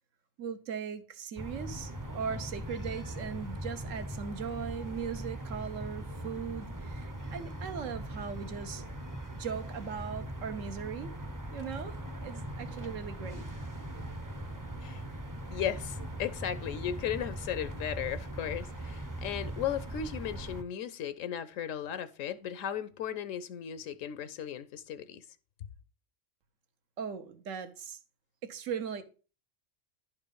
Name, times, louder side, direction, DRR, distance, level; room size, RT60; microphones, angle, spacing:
voice 1, 0.4-8.8 9.3-11.1 11.5-13.4 27.0-28.0 28.4-29.0, right 7 dB, 80° right, 1.3 m, -39 dB
sound 1, 1.4-20.6, right 1 dB, 20° right, 0.6 m, -40 dB
voice 2, 15.5-25.2, left 9 dB, 85° left, 1.0 m, -36 dB
10.5 x 4.4 x 5.2 m
omnidirectional pair, 1.3 m